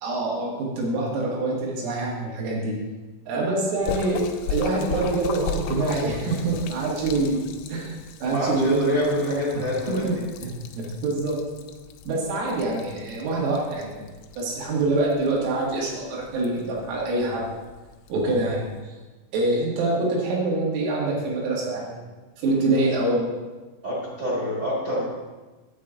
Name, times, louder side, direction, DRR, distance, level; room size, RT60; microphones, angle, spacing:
voice 1, 0.0-2.8 3.3-8.0 8.2-10.2 10.4-11.4 12.1-14.0 14.4-17.5 18.1-18.9 19.3-22.0 22.4-23.3, right 2 dB, 90° right, -4 dB, 4.7 m, -25 dB
Splash splatter, 3.8-18.8, left 6 dB, 90° left, 3.1 m, -38 dB
voice 2, 8.2-10.2 22.7-22.8 23.8-25.0, equal, 55° right, -7 dB, 1.1 m, -27 dB
9.2 x 8.1 x 3.8 m, 1.2 s
omnidirectional pair, 5.7 m